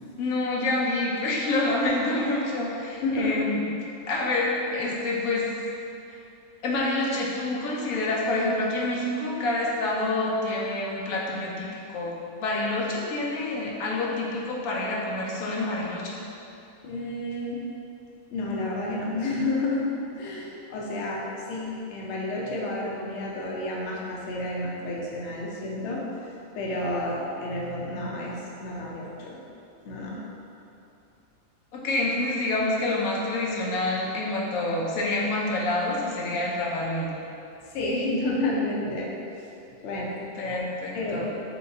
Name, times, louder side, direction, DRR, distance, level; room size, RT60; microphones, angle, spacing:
voice 1, 0.2-3.6 4.1-5.5 6.6-12.1 12.4-16.2 31.7-37.1 40.4-41.3, left 2 dB, 80° left, -3 dB, 1.1 m, -27 dB
voice 2, 3.0-3.4 16.8-17.6 18.3-19.9 20.2-21.2 21.5-29.4 29.8-30.2 37.7-39.1 39.8-40.1 40.5-40.6 40.9-41.3, left 2 dB, 60° left, -4 dB, 0.9 m, -30 dB
4.4 x 3.7 x 2.7 m, 2.8 s
omnidirectional pair, 1.5 m